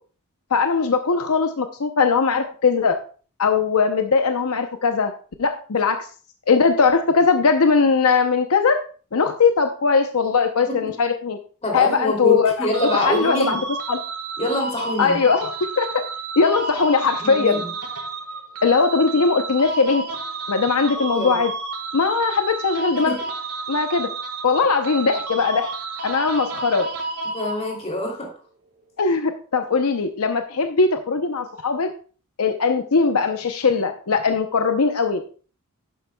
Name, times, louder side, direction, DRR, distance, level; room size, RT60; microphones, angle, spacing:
voice 1, 0.5-3.0 3.4-5.1 5.4-6.1 6.5-8.8 9.1-11.4 11.7-13.6 13.9-14.0 15.0-16.0 16.4-17.6 18.6-20.0 20.5-21.5 21.9-23.1 23.7-24.1 24.4-25.7 26.0-26.9 29.0-31.9 32.4-35.4, left 5 dB, 70° left, 7 dB, 0.7 m, -20 dB
voice 2, 11.6-13.6 14.4-15.2 17.2-17.7 21.0-21.4 23.0-23.2 27.2-28.3, left 1 dB, 30° left, 1 dB, 2.8 m, -25 dB
sound 1, 12.7-28.0, right 3 dB, 90° right, 2.2 m, -31 dB
11.5 x 10.0 x 2.3 m, 0.39 s
head